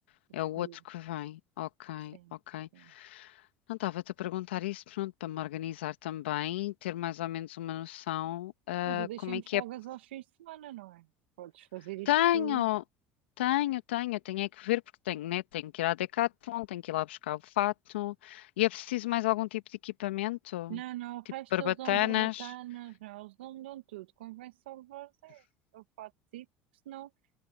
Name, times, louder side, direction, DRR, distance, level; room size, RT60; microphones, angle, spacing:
voice 1, 0.3-2.2 2.5-3.3 3.7-9.6 12.1-12.8 13.4-20.8 21.5-22.5, left 15 dB, 90° left, 1.9 m, -32 dB
voice 2, 8.9-11.1 11.4-12.7 20.7-25.4 25.7-26.5 26.8-27.1, right 16 dB, 90° right, 1.3 m, -43 dB
open air
supercardioid pair, 85°, 6 cm